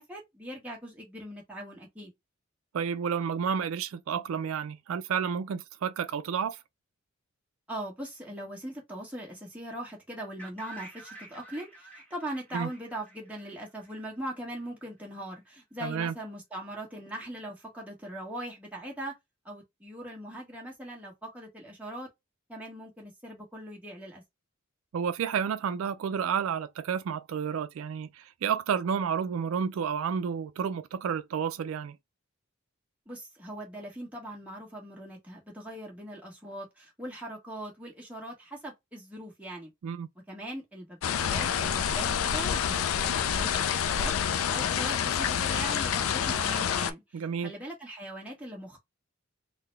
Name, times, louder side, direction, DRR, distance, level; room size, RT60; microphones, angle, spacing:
voice 1, 0.0-2.1 7.7-19.1 19.4-22.1 22.5-24.2 33.1-39.7 40.3-44.1 44.5-48.8, right 1 dB, 5° right, 1.4 m, -40 dB
voice 2, 2.7-6.6 12.5-12.7 15.8-16.1 24.9-32.0 39.8-40.1 47.1-47.5, right 7 dB, 75° right, 0.3 m, -31 dB
sound 1, 10.4-14.3, right 2 dB, 10° left, 1.2 m, -49 dB
sound 2, 41.0-46.9, left 8 dB, 85° left, 0.4 m, -28 dB
3.8 x 2.2 x 3.2 m
head